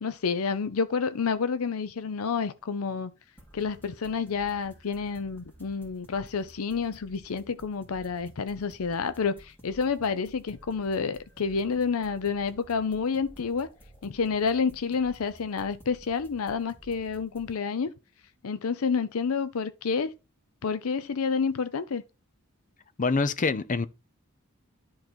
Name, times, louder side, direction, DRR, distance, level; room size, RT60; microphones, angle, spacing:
voice 1, 0.0-3.1 3.5-13.7 14.0-17.9 18.4-20.1 20.6-22.0, left 5 dB, 85° left, 0.6 m, -29 dB
sound 1, 3.4-17.5, right 1 dB, 10° left, 2.5 m, -53 dB
voice 2, 23.0-23.9, left 4 dB, 35° left, 0.5 m, -25 dB
10.5 x 3.9 x 4.4 m
head